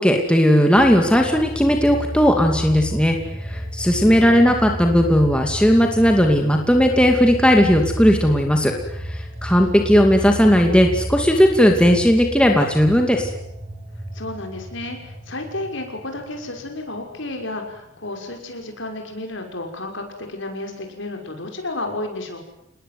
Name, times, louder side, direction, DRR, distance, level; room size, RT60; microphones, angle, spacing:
voice 1, 0.0-8.7 9.1-13.3, equal, 5° left, 3 dB, 2.5 m, -16 dB
sound 1, 0.7-18.3 18.6-18.7, equal, 30° right, 4.7 m, -32 dB
voice 2, 3.9-4.9 14.1-22.4, left 2 dB, 60° left, 4 dB, 6.0 m, -32 dB
28.0 x 20.5 x 9.5 m, 0.81 s
head